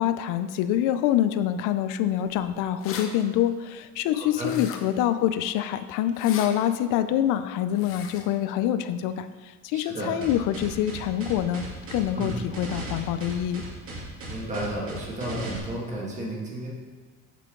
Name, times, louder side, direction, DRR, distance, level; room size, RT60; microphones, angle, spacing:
voice 1, 0.0-13.7, left 11 dB, 85° left, 11 dB, 0.5 m, -26 dB
Elastic Key Ring, 2.8-3.1 4.4-5.0 6.1-6.5 7.7-8.2, left 7 dB, 45° left, 0.7 m, -39 dB
voice 2, 4.1-4.6 9.7-10.1 12.1-12.5 14.3-16.7, right 1 dB, 25° right, -3 dB, 1.7 m, -33 dB
sound 1, 10.2-15.6, right 2 dB, 45° right, 2.2 m, -37 dB
8.3 x 6.7 x 3.8 m, 1.4 s
cardioid pair, 170°, 30 cm